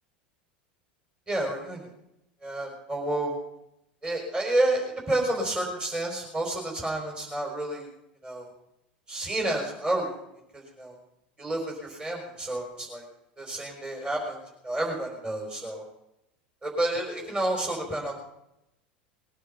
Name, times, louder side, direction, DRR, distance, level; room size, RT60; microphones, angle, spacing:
voice 1, 1.3-1.9 2.4-3.4 4.0-7.9 8.2-8.5 9.1-10.1 10.5-11.0 11.4-13.0 13.4-14.4 14.6-15.8 16.6-18.1, right 1 dB, 20° right, 0 dB, 4.4 m, -30 dB
20.5 x 10.5 x 5.5 m, 0.85 s
hypercardioid pair, 80°, 5 cm